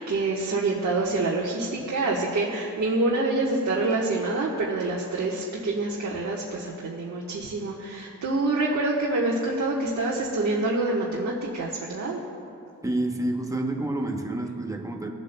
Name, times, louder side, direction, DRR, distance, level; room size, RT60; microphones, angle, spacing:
voice 1, 0.0-12.2, right 2 dB, 60° right, -4 dB, 1.3 m, -26 dB
voice 2, 12.8-15.1, right 1 dB, 10° right, 2 dB, 0.9 m, -28 dB
19.5 x 7.9 x 2.2 m, 2.5 s
wide cardioid pair, 120°, 32 cm